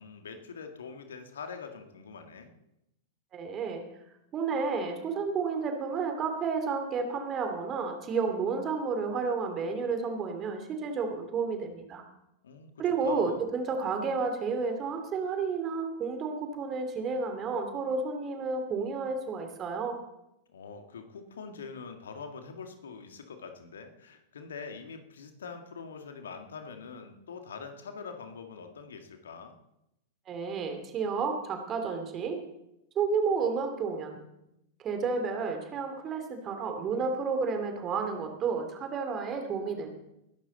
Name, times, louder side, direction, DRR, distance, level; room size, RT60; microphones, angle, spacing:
voice 1, 0.0-2.5 12.4-12.7 13.0-13.4 20.5-29.6, left 5 dB, 65° left, 6 dB, 1.9 m, -44 dB
voice 2, 3.3-3.8 4.3-12.0 12.8-20.0 30.3-32.4 33.0-34.2 34.8-39.9, right 5 dB, 30° right, 5 dB, 2.7 m, -31 dB
20.0 x 11.5 x 4.0 m, 0.85 s
figure-of-eight pair, 95°, 0 cm